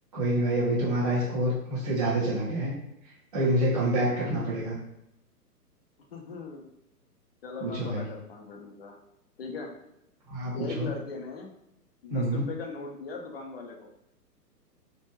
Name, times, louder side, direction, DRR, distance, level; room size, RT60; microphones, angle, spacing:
voice 1, 0.1-2.7 3.3-4.8 7.6-8.0 10.3-10.9 12.1-12.4, right 1 dB, 25° right, -10 dB, 0.4 m, -27 dB
voice 2, 1.0-1.4 3.9-4.3 6.1-6.7 7.4-9.0 9.4-9.7 10.5-11.5 12.0-13.9, left 4 dB, 40° left, 1 dB, 0.4 m, -39 dB
2.2 x 2.1 x 3.0 m, 0.81 s
hypercardioid pair, 135°, 49 cm